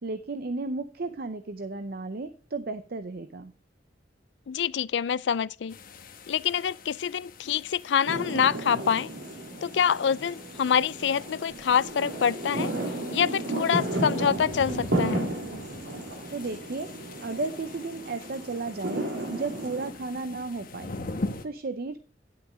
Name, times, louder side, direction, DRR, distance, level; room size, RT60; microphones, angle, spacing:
voice 1, 0.0-3.5 16.3-16.9 17.2-19.1 19.3-20.9 21.4-22.0, right 3 dB, 55° right, 0.6 m, -34 dB
voice 2, 4.5-5.8 6.3-9.1 9.6-12.7 13.1-15.3, left 7 dB, 70° left, 0.4 m, -26 dB
sound 1, 5.7-21.4, left 3 dB, 50° left, 1.1 m, -43 dB
sound 2, 8.1-19.9, right 1 dB, 80° right, 2.2 m, -33 dB
10.5 x 6.1 x 5.0 m
head